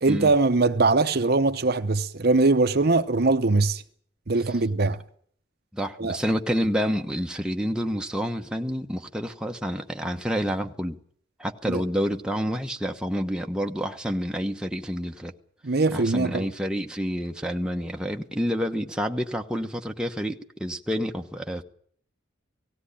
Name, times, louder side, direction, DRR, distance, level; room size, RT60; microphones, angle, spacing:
voice 1, 0.0-3.8 4.3-5.0 6.0-6.2 11.7-11.8 15.6-16.5, right 3 dB, 55° right, 0.8 m, -22 dB
voice 2, 5.7-11.0 11.4-15.3 15.9-21.6, equal, 5° right, 1.1 m, -28 dB
18.0 x 17.0 x 10.0 m
head